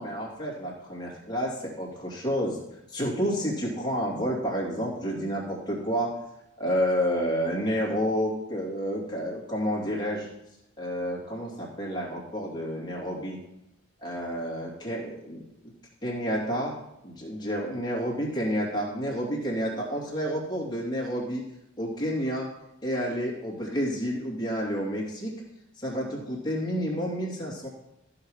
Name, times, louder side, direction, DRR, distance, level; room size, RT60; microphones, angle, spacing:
voice 1, 0.0-2.6 2.9-6.2 6.6-10.3 10.8-13.4 14.0-15.4 16.0-16.8 17.0-21.4 21.8-22.5 22.8-25.3 25.8-27.7, equal, 20° left, -3 dB, 2.7 m, -30 dB
14.0 x 5.9 x 4.9 m, 0.86 s
head